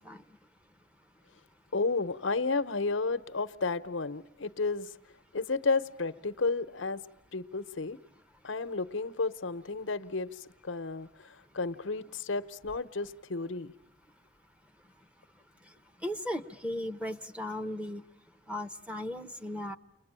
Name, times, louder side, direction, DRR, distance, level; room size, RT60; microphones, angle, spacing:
voice 1, 1.7-4.9 5.3-7.0 7.3-8.0 8.4-11.3 11.5-13.7, left 3 dB, 85° left, 0.9 m, -32 dB
voice 2, 16.0-18.0 18.5-19.8, left 1 dB, 5° right, 1.0 m, -36 dB
30.0 x 22.0 x 8.9 m
head